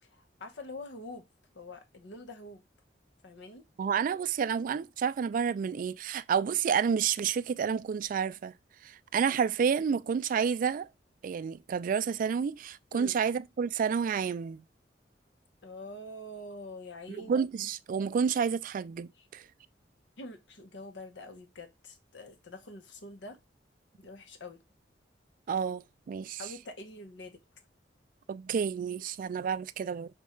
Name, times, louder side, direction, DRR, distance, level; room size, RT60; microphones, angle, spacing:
voice 1, 0.0-1.3 1.5-2.6 3.2-3.6 12.9-13.2 15.6-17.4 19.1-19.3 20.2-23.4 24.0-24.6 26.4-27.4, left 1 dB, 90° left, 0.9 m, -45 dB
voice 2, 3.8-8.5 8.8-10.9 11.2-14.6 17.3-19.4 25.5-25.8 26.1-26.4 28.3-30.1, right 7 dB, 50° right, 0.3 m, -30 dB
5.3 x 2.4 x 4.2 m
head